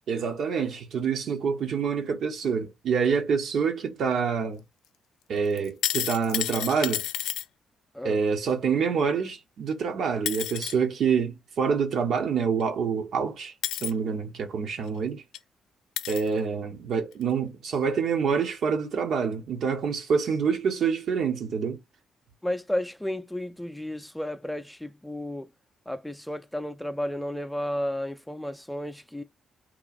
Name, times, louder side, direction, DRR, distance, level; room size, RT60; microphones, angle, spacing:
voice 1, 0.1-4.6 5.3-7.0 8.0-13.5 13.8-15.2 16.1-21.8, right 6 dB, 65° right, 0.9 m, -26 dB
sound 1, 5.6-7.4 9.7-9.8 10.3-10.7 12.6-12.7 13.6-13.9 14.9-15.0 15.3-15.4 16.0-16.3 17.1-17.2, left 11 dB, 70° left, 0.3 m, -30 dB
voice 2, 22.4-25.5 25.9-29.2, left 1 dB, 5° left, 0.5 m, -32 dB
3.0 x 2.3 x 4.0 m
hypercardioid pair, 45°, 0 cm